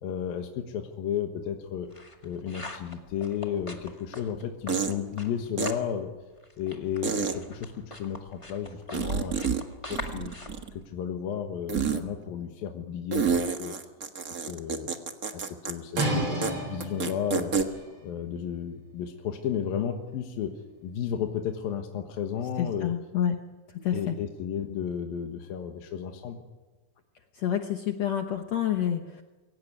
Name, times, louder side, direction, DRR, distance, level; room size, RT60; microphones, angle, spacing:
voice 1, 0.0-1.9 2.2-6.1 6.6-7.7 8.0-9.5 9.9-10.3 10.7-13.8 14.4-14.9 15.3-22.9 23.8-26.4, left 8 dB, 80° left, 4 dB, 3.3 m, -33 dB
sound 1, 1.6-5.9 6.2-11.5, left 2 dB, 15° left, 1.0 m, -44 dB
sound 2, 3.8-3.9 4.7-4.9 5.6-5.7 7.0-7.3 8.9-9.6 9.9-10.8 11.7-12.0 13.1-15.7 16.0-16.1 16.4-16.5 16.8-17.6, right 6 dB, 55° right, 0.9 m, -28 dB
sound 3, 15.9-21.6, right 1 dB, 35° right, 7.5 m, -35 dB
voice 2, 22.6-23.4 23.8-24.2 27.3-29.2, left 9 dB, 65° left, 5 dB, 1.8 m, -28 dB
23.5 x 17.5 x 9.7 m, 1.2 s
omnidirectional pair, 4.1 m